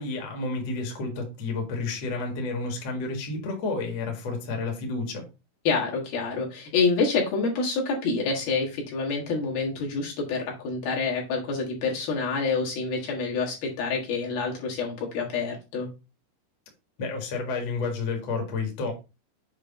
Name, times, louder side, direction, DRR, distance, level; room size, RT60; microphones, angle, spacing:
voice 1, 0.0-5.2 17.0-18.9, left 3 dB, 50° left, 1 dB, 2.2 m, -30 dB
voice 2, 5.6-15.9, left 4 dB, 65° left, -2 dB, 3.3 m, -27 dB
7.6 x 3.0 x 5.1 m, 0.29 s
omnidirectional pair, 4.8 m